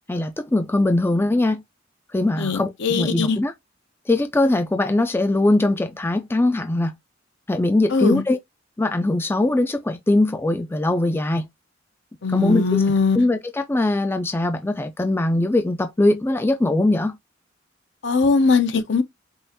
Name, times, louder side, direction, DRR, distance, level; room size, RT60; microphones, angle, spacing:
voice 1, 0.1-1.6 2.1-3.5 4.1-6.9 7.5-8.4 8.8-11.5 12.3-12.8 13.1-17.2, left 2 dB, 10° left, 0.4 m, -21 dB
voice 2, 2.4-3.4 7.9-8.2 12.2-13.2 18.0-19.0, left 4 dB, 65° left, 0.7 m, -20 dB
5.4 x 2.4 x 2.8 m
head